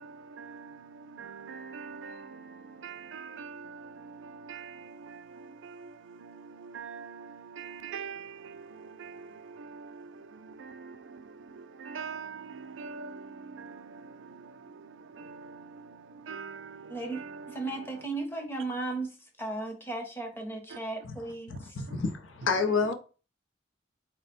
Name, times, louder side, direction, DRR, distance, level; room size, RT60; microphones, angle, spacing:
voice 1, 0.0-17.3, right 5 dB, 75° right, 0.4 m, -44 dB
voice 2, 16.9-21.8, right 2 dB, 10° left, 0.7 m, -36 dB
voice 3, 21.8-22.9, left 4 dB, 85° left, 0.7 m, -28 dB
4.2 x 2.1 x 4.1 m
head